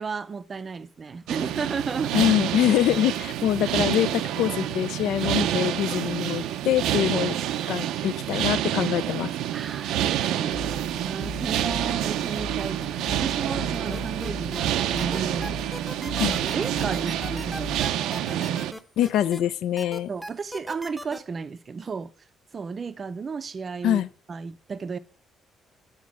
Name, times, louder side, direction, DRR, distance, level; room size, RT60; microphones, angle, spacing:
voice 1, 0.0-2.3 9.5-10.6 11.0-18.7 20.1-22.1 22.5-24.0 24.3-25.0, right 5 dB, 30° right, 0.5 m, -33 dB
sound 1, 1.3-18.7, right 12 dB, 90° right, 0.5 m, -28 dB
voice 2, 2.1-7.4 7.7-9.3 16.2-16.4 19.0-20.1 23.8-24.1, left 11 dB, 75° left, 0.4 m, -24 dB
sound 2, 10.5-17.9, left 3 dB, 40° left, 1.3 m, -39 dB
sound 3, 13.9-14.6 15.0-19.4 19.8-21.2, equal, 5° left, 0.7 m, -38 dB
9.5 x 4.5 x 6.0 m
cardioid pair, 150°, 0 cm